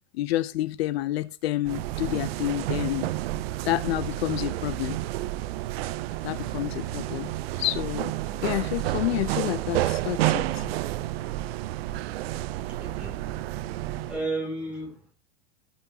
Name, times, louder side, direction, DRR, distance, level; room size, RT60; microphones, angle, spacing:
voice 1, 0.1-3.1 3.6-5.0 6.2-7.3 7.6-8.1 8.4-10.7, left 15 dB, 60° left, 0.6 m, -29 dB
sound 1, 1.6-14.3, right 15 dB, 60° right, 0.6 m, -30 dB
voice 2, 12.7-13.2 14.1-15.1, right 2 dB, 5° right, 3.6 m, -33 dB
16.5 x 5.8 x 2.9 m
supercardioid pair, 140°, 34 cm